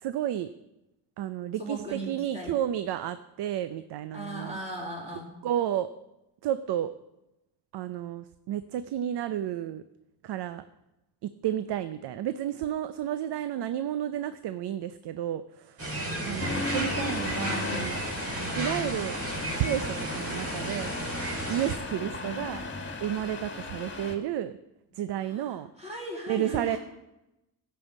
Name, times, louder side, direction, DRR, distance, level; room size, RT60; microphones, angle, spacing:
voice 1, 0.0-0.5 1.2-4.6 5.4-5.9 6.4-6.9 7.7-9.8 10.2-10.6 11.4-15.8 16.2-18.0 18.5-19.2 19.6-20.9 21.5-22.7 23.0-24.6 25.0-25.7 26.3-26.8, right 11 dB, 90° right, 12 dB, 0.6 m, -31 dB
voice 2, 1.6-2.6 4.1-5.3 16.1-16.5 22.2-22.4 25.2-26.8, right 1 dB, 15° right, -2 dB, 4.8 m, -38 dB
sound 1, 15.8-21.8, right 1 dB, 35° right, 3.6 m, -33 dB
Accelerating revving vroom, 16.4-24.1, left 3 dB, 30° left, 2.0 m, -36 dB
15.5 x 5.7 x 8.0 m, 0.94 s
cardioid pair, 105°, 39 cm